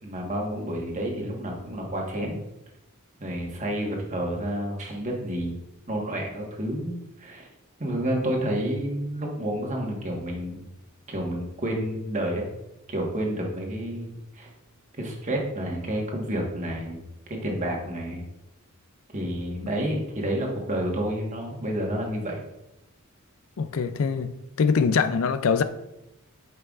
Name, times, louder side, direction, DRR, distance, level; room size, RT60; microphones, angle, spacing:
voice 1, 0.0-2.4 3.2-5.5 5.9-7.5 7.8-10.7 11.1-12.5 12.9-14.5 15.0-18.2 19.1-22.4, right 1 dB, 35° right, 1.4 m, -30 dB
voice 2, 23.6-24.3 24.6-25.6, left 5 dB, 65° left, 0.4 m, -23 dB
9.1 x 5.4 x 2.4 m
head